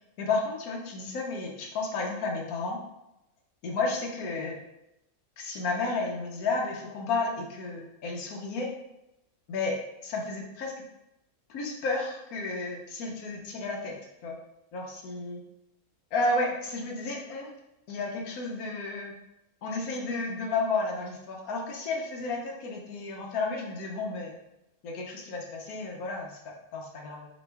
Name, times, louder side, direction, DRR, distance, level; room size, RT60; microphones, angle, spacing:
voice 1, 0.2-2.8 3.6-4.6 5.4-8.7 9.5-9.8 10.0-10.7 11.5-13.9 14.2-14.4 14.7-15.4 16.1-17.5 17.9-19.2 19.6-24.3 24.8-27.3, left 3 dB, 90° left, 0 dB, 1.2 m, -32 dB
4.3 x 3.0 x 3.4 m, 0.88 s
omnidirectional pair, 1.5 m